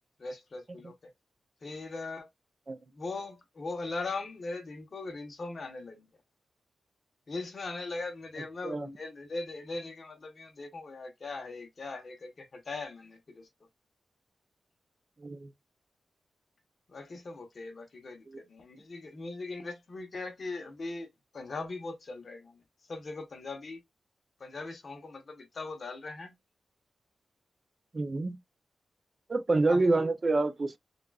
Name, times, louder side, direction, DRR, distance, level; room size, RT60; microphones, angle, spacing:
voice 1, 0.2-0.9 1.6-2.3 2.9-6.1 7.3-13.5 16.9-21.1 21.3-22.6 22.9-23.8 24.4-26.3 29.7-29.9, left 3 dB, 45° left, 1.1 m, -40 dB
voice 2, 15.2-15.5 27.9-28.4 29.3-30.8, right 2 dB, 30° right, 0.5 m, -27 dB
6.6 x 2.5 x 2.3 m
wide cardioid pair, 145°, 0 cm